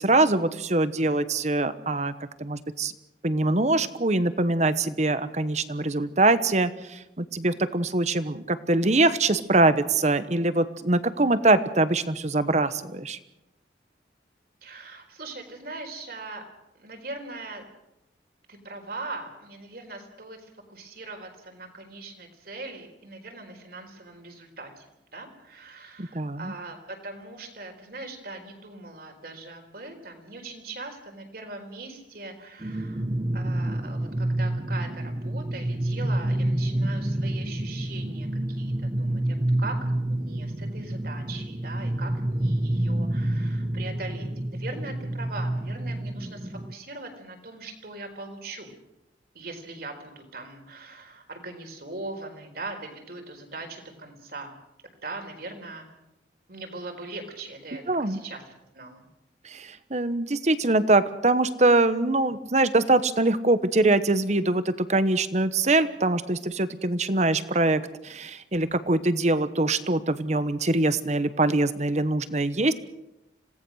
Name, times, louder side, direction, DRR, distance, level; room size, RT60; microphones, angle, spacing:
voice 1, 0.0-2.1 2.4-2.9 3.2-13.2 26.0-26.5 57.9-58.2 59.4-72.7, right 2 dB, 40° right, 13 dB, 1.1 m, -23 dB
voice 2, 14.6-16.4 16.8-17.6 18.5-24.8 25.1-33.0 33.3-48.7 49.3-54.5 55.0-55.8 56.5-58.4 58.7-59.0, right 3 dB, 55° right, 4 dB, 4.2 m, -40 dB
sound 1, 32.6-46.7, right 1 dB, 25° right, 0.8 m, -28 dB
26.5 x 18.0 x 6.4 m, 0.91 s
head